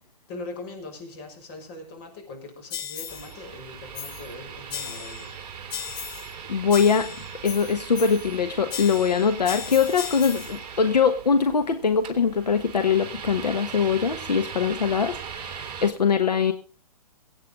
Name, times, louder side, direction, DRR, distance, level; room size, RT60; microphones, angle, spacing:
voice 1, 0.3-5.3, left 2 dB, 35° left, 1 dB, 5.9 m, -41 dB
sound 1, 2.7-3.3 3.9-4.3 4.7-5.3 5.7-6.4 6.7-8.4 8.7-10.6, left 9 dB, 20° left, 1.0 m, -36 dB
sound 2, 3.1-15.9, right 7 dB, 25° right, 3.3 m, -39 dB
voice 2, 6.5-7.1 7.4-16.5, left 6 dB, 75° left, 8 dB, 1.4 m, -22 dB
23.0 x 9.1 x 3.8 m, 0.35 s
figure-of-eight pair, 125°, 21 cm